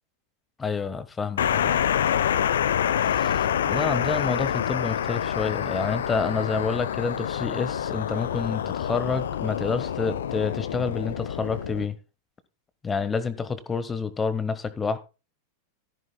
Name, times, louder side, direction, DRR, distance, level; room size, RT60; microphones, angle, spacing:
voice 1, 0.6-1.8 3.1-11.9 12.8-15.0, left 5 dB, 15° left, 1.3 m, -28 dB
sound 1, 1.4-11.9, left 9 dB, 65° left, 0.8 m, -27 dB
14.5 x 13.5 x 2.3 m
figure-of-eight pair, 90°, 0 cm